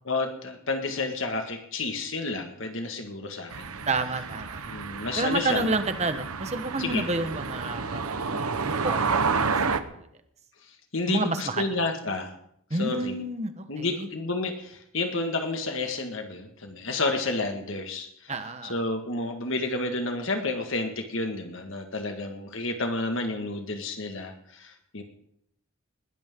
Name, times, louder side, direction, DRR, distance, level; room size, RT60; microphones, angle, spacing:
voice 1, 0.1-3.8 4.7-5.7 6.8-7.1 10.9-12.3 12.8-13.2 13.7-18.3 18.7-25.0, left 3 dB, 60° left, 4 dB, 1.8 m, -30 dB
sound 1, 3.5-9.8, right 5 dB, 85° right, 1.1 m, -30 dB
voice 2, 3.9-4.7 5.2-10.1 11.1-11.8 12.7-14.1 18.3-18.8, right 3 dB, 30° right, 9 dB, 1.2 m, -30 dB
20.5 x 16.5 x 3.8 m, 0.72 s
head